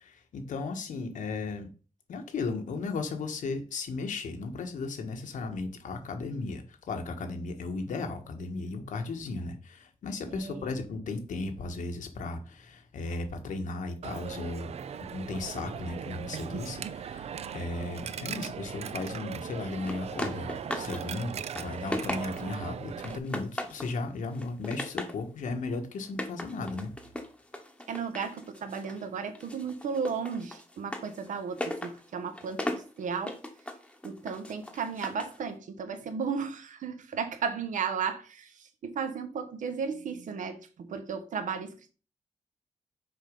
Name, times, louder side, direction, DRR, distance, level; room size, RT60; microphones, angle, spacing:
voice 1, 0.0-1.7 2.1-14.7 15.1-26.9, left 3 dB, 80° left, 1.5 m, -35 dB
voice 2, 10.3-10.7 27.9-33.4 34.0-38.5 38.8-41.9, right 6 dB, 75° right, 1.1 m, -34 dB
Coin (dropping), 14.0-23.2, right 7 dB, 55° right, 0.5 m, -39 dB
sound 1, 19.9-21.0 21.3-22.6 23.0-24.0 24.3-25.2 26.0-29.0 29.3-35.4, left 1 dB, 10° left, 1.0 m, -38 dB
6.5 x 4.9 x 5.3 m
wide cardioid pair, 170°, 13 cm